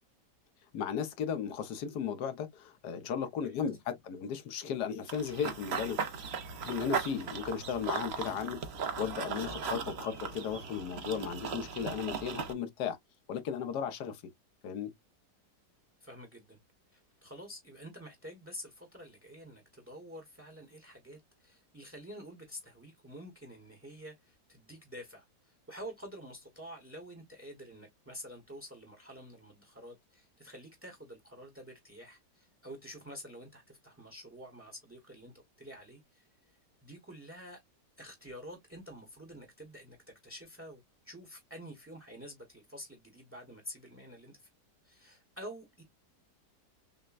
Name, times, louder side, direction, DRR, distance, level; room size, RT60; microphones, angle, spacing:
voice 1, 0.7-6.2 6.6-8.6 9.0-13.0 13.3-14.2 14.6-14.9, left 7 dB, 70° left, 1.5 m, -35 dB
Run / Bird vocalization bird call bird song, 5.1-12.5, right 6 dB, 50° right, 0.8 m, -38 dB
voice 2, 16.0-16.6 16.9-37.6 38.0-40.0 40.2-44.5 44.8-45.8, equal, 10° right, 0.9 m, -48 dB
6.4 x 2.2 x 2.4 m
omnidirectional pair, 1.9 m